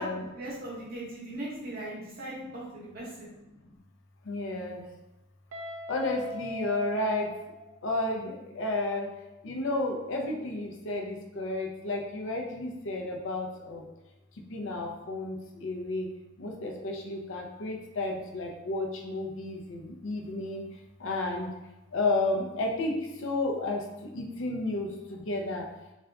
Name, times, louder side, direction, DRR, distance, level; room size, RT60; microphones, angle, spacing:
voice 1, 0.0-3.3, right 1 dB, 45° right, -7 dB, 0.9 m, -39 dB
voice 2, 4.3-4.8 5.9-7.3 7.8-9.1 9.4-13.8 14.5-15.3 15.6-16.1 16.4-20.6 21.0-21.5 21.9-22.9 23.2-23.8 24.1-24.9 25.3-25.6, left 2 dB, 65° left, 1 dB, 0.5 m, -31 dB
Guitar, 5.5-8.3, left 2 dB, 90° right, 0.6 m, -41 dB
3.6 x 2.4 x 3.3 m, 1.0 s
head